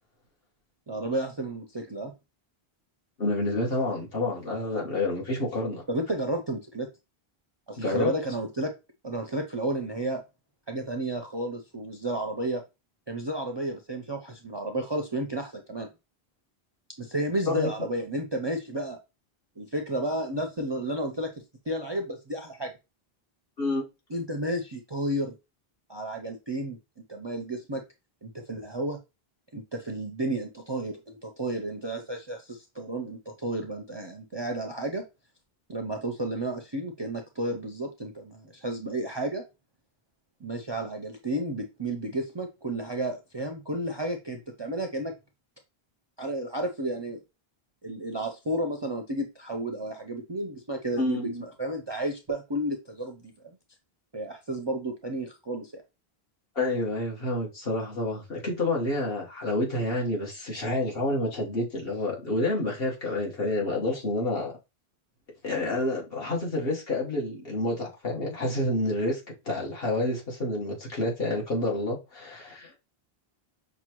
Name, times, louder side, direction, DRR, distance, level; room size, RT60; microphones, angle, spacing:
voice 1, 0.9-2.1 5.9-6.9 7.7-8.7 9.0-10.2 10.7-12.6 13.1-15.9 17.0-19.0 19.6-21.3 21.7-22.7 24.1-25.3 25.9-26.8 27.1-27.8 28.2-29.0 29.5-35.0 35.7-39.4 40.4-45.1 46.2-47.2 47.8-53.6 54.1-55.8, right 1 dB, 35° right, 0.4 m, -32 dB
voice 2, 3.2-5.8 7.8-8.1 17.5-17.7 23.6-23.8 51.0-51.4 56.6-64.5 65.4-69.2 69.5-72.8, left 2 dB, 65° left, 1.7 m, -28 dB
5.9 x 2.2 x 3.0 m
omnidirectional pair, 1.0 m